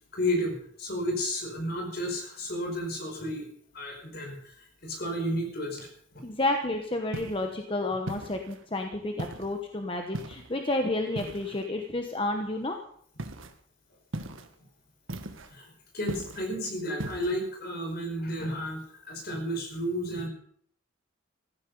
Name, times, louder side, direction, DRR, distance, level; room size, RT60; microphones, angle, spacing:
voice 1, 0.1-3.5 3.7-6.2 15.5-20.3, equal, 50° left, 3 dB, 4.9 m, -32 dB
voice 2, 6.2-12.8, left 2 dB, 25° left, 4 dB, 1.1 m, -30 dB
sound 1, 7.1-7.5 8.1-8.6 9.2-9.6 10.1-10.6 11.2-11.7 13.2-13.5 14.1-14.5 15.1-15.6 16.1-16.5 17.0-17.3, right 1 dB, 85° right, 1.4 m, -38 dB
15.5 x 14.0 x 5.4 m, 0.63 s
head